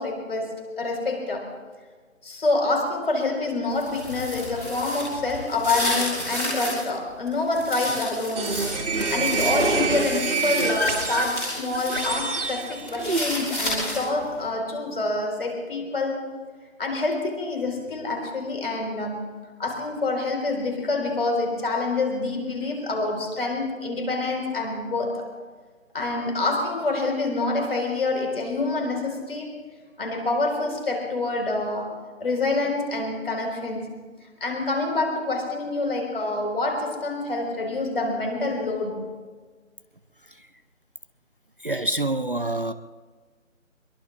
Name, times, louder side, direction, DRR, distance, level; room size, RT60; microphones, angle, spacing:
voice 1, 0.0-1.5 2.2-16.2 16.8-25.3 25.9-29.5 30.0-31.9 32.2-33.9 34.4-39.1, left 2 dB, 45° left, 2 dB, 4.7 m, -27 dB
sound 1, 3.7-6.9 7.3-12.1 12.4-14.2, left 1 dB, 10° left, 3.3 m, -32 dB
sound 2, 8.4-13.7, right 3 dB, 60° right, 2.6 m, -26 dB
voice 2, 41.6-42.7, right 1 dB, 40° right, 9 dB, 0.6 m, -27 dB
24.0 x 22.5 x 2.5 m, 1.5 s
figure-of-eight pair, 170°, 40 cm